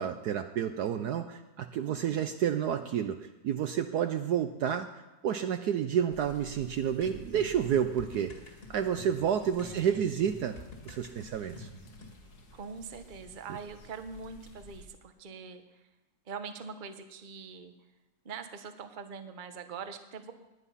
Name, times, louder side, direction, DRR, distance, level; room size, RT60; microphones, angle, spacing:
voice 1, 0.0-4.9 5.2-8.3 8.7-10.6 10.8-11.7, right 9 dB, 65° right, 9 dB, 1.1 m, -30 dB
voice 2, 1.9-2.2 9.6-10.0 12.5-15.9 16.3-17.7 18.2-20.3, right 5 dB, 35° right, 8 dB, 0.9 m, -43 dB
sound 1, 6.1-14.9, left 1 dB, 55° left, 2.0 m, -54 dB
sound 2, 7.0-12.2, left 2 dB, 30° left, 2.5 m, -47 dB
19.0 x 10.5 x 5.6 m, 1.0 s
omnidirectional pair, 2.1 m